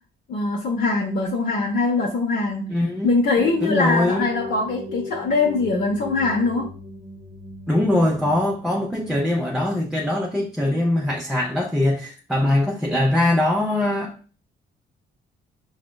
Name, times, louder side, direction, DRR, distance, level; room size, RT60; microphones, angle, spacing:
voice 1, 0.3-2.6 3.0-6.7, left 3 dB, 55° left, 0.7 m, -22 dB
voice 2, 2.7-3.1 3.6-4.3 7.7-14.2, left 1 dB, ahead, 0.4 m, -22 dB
sound 1, 3.4-11.2, left 3 dB, 50° right, 0.7 m, -37 dB
4.8 x 2.1 x 2.2 m
cardioid pair, 90°, 20 cm